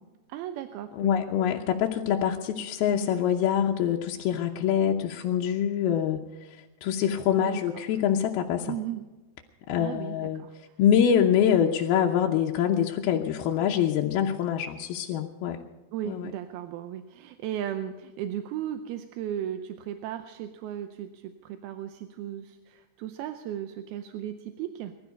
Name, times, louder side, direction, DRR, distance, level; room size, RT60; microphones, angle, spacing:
voice 1, 0.3-1.1 7.4-7.8 8.7-9.0 9.8-10.5 15.9-24.9, right 11 dB, 80° right, 8 dB, 2.5 m, -36 dB
voice 2, 1.0-6.2 6.5-8.8 9.7-10.4 10.8-15.6 16.1-16.3, left 9 dB, 75° left, 1 dB, 2.6 m, -25 dB
20.0 x 12.5 x 5.3 m, 1.1 s
omnidirectional pair, 4.7 m